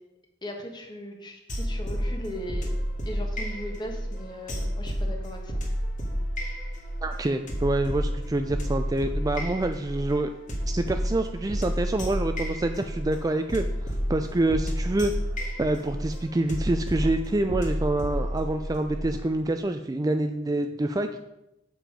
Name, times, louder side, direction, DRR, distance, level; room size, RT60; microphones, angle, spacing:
voice 1, 0.4-5.6, equal, 25° left, 2 dB, 1.4 m, -38 dB
sound 1, 1.5-19.2, equal, 45° left, 2.1 m, -31 dB
voice 2, 7.0-10.3 10.7-15.1 15.6-21.1, right 2 dB, 20° right, 7 dB, 0.4 m, -27 dB
7.5 x 7.1 x 5.1 m, 0.88 s
head